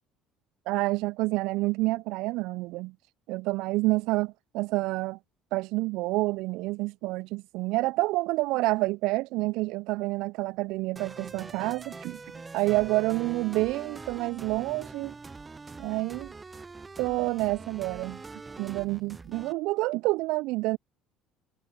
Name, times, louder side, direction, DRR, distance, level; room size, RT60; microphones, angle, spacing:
voice 1, 0.7-2.9 3.3-5.2 5.5-12.2 12.5-15.1 15.8-16.3 17.0-18.2 18.6-20.8, right 21 dB, 65° right, 0.4 m, -28 dB
sound 1, 11.0-19.5, right 4 dB, 25° right, 0.8 m, -43 dB
figure-of-eight pair, 60°, 0 cm